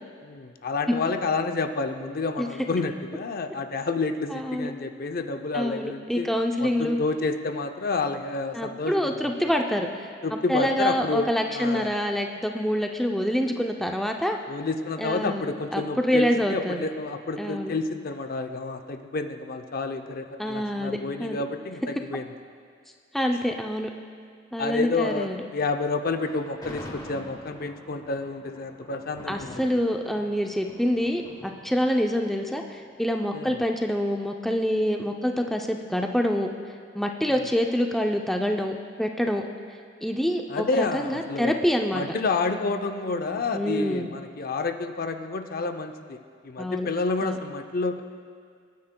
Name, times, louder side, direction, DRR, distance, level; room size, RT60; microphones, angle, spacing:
voice 1, 0.2-6.3 6.6-9.5 10.2-11.3 11.5-11.9 14.5-22.2 24.6-29.6 33.3-33.6 40.5-41.5 41.9-46.2 46.4-48.0, left 3 dB, 50° left, 7 dB, 0.6 m, -29 dB
voice 2, 4.3-4.7 5.5-7.0 8.5-14.4 15.0-16.8 17.4-17.7 20.4-21.4 23.1-23.9 24.5-25.4 29.3-36.5 36.9-39.4 40.0-42.0 43.5-44.1 46.6-46.9 47.2-47.4, equal, ahead, 2 dB, 0.4 m, -26 dB
Thunder, 26.2-33.4, left 1 dB, 20° left, 1.3 m, -45 dB
23.5 x 9.5 x 2.2 m, 2.1 s
head